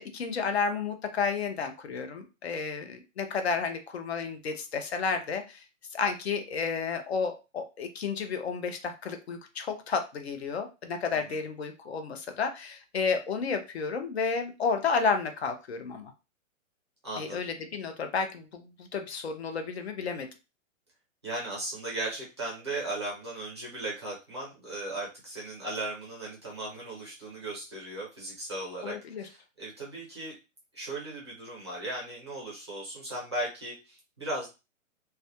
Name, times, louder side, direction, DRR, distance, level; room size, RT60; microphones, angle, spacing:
voice 1, 0.0-5.6 5.9-16.1 17.2-20.3 28.8-29.3, left 5 dB, 55° left, 7 dB, 0.5 m, -31 dB
voice 2, 17.0-17.4 21.2-30.4 30.7-34.5, right 2 dB, 20° right, -4 dB, 0.5 m, -37 dB
2.3 x 2.1 x 2.7 m, 0.28 s
hypercardioid pair, 180°, 40 cm